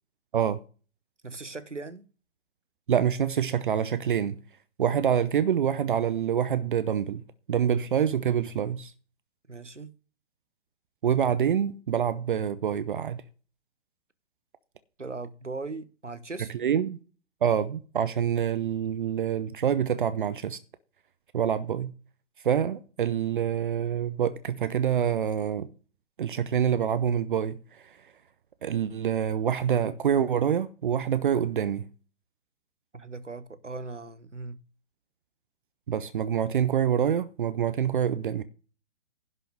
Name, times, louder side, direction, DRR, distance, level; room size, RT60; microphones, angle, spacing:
voice 1, 1.2-2.1 9.5-9.9 15.0-16.5 32.9-34.6, right 3 dB, 85° right, 1.2 m, -39 dB
voice 2, 2.9-4.4 4.8-7.2 7.5-8.9 11.0-13.2 16.5-17.0 17.4-20.6 21.3-21.9 22.4-25.7 26.2-27.6 28.6-31.9 35.9-38.4, right 8 dB, 45° right, 0.8 m, -26 dB
11.0 x 5.7 x 6.3 m
figure-of-eight pair, 125°, 35 cm